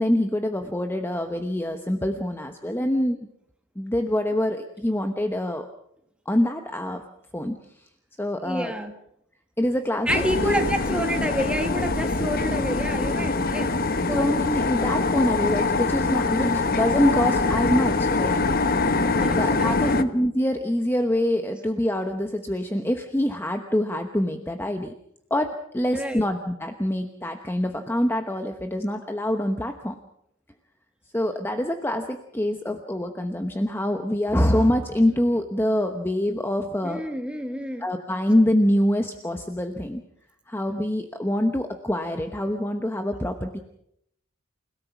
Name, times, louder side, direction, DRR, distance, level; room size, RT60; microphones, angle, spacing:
voice 1, 0.0-3.3 3.8-5.7 6.3-7.0 7.3-7.6 8.2-8.7 9.6-10.5 14.1-18.4 19.4-25.0 25.3-30.0 31.1-37.0 37.8-40.0 40.5-43.6, left 1 dB, 10° left, 6 dB, 1.0 m, -25 dB
voice 2, 8.4-8.9 10.1-13.8 14.1-14.3 19.2-20.0 25.9-26.3 36.8-37.9, right 1 dB, 5° right, 5 dB, 2.0 m, -29 dB
sound 1, 10.1-20.0, left 3 dB, 45° left, 1.0 m, -24 dB
29.5 x 17.5 x 6.0 m, 0.75 s
head